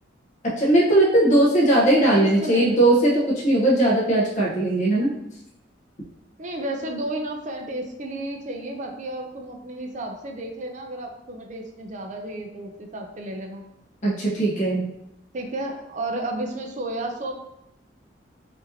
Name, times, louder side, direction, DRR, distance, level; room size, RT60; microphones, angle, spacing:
voice 1, 0.4-5.1 14.0-14.9, right 1 dB, 40° left, -5 dB, 0.9 m, -19 dB
voice 2, 2.0-2.8 6.4-13.6 15.3-17.3, right 1 dB, 40° right, 2 dB, 0.5 m, -32 dB
5.0 x 2.7 x 2.8 m, 0.83 s
head